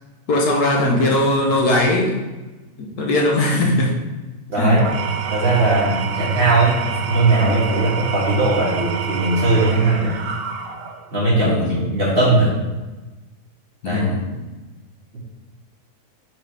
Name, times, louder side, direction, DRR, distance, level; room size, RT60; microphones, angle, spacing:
voice 1, 0.3-2.2 2.8-4.0 4.6-4.7 5.3-5.8 11.4-11.9 13.8-14.5, left 1 dB, 75° left, 0 dB, 1.4 m, -20 dB
voice 2, 4.5-4.8 5.3-6.8 7.1-10.1 11.1-12.5 13.8-14.1, right 2 dB, 35° right, -7 dB, 2.1 m, -18 dB
Engine / Tools, 4.7-11.1, right 7 dB, 70° right, 0.5 m, -27 dB
5.8 x 5.2 x 3.3 m, 1.2 s
omnidirectional pair, 1.7 m